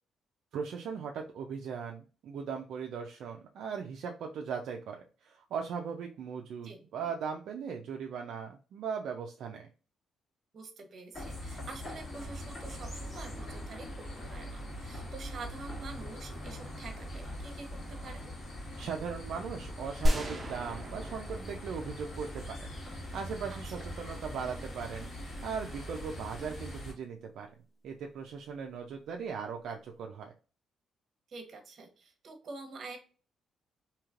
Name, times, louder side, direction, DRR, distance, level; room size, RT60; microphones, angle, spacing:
voice 1, 0.5-9.7 18.8-27.5 27.8-30.3, right 6 dB, 75° right, 2 dB, 0.4 m, -39 dB
voice 2, 10.5-18.3 23.5-23.9 31.3-33.0, right 3 dB, 55° right, 5 dB, 0.9 m, -47 dB
sound 1, 11.1-26.9, equal, 40° left, 1.6 m, -42 dB
sound 2, 20.0-22.9, equal, 25° right, 0.8 m, -33 dB
3.1 x 2.8 x 2.4 m, 0.36 s
cardioid pair, 90°, 0 cm